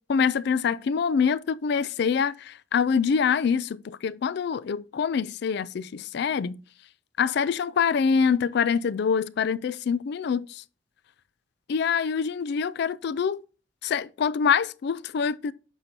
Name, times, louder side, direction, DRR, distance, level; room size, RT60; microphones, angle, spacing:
voice 1, 0.1-6.6 7.2-10.6 11.7-13.4 13.8-15.5, left 6 dB, 65° left, 0.3 m, -25 dB
8.9 x 5.9 x 2.8 m
head